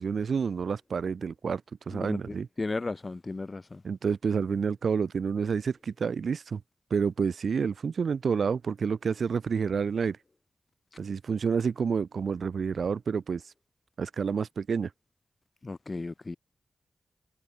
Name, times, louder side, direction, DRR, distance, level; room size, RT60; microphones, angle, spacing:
voice 1, 0.0-2.5 3.8-6.6 6.9-10.2 11.0-13.4 14.0-14.9, right 6 dB, 75° right, 3.8 m, -29 dB
voice 2, 1.9-3.8 15.6-16.4, left 3 dB, 40° left, 1.6 m, -35 dB
cardioid pair, 45°, 0 cm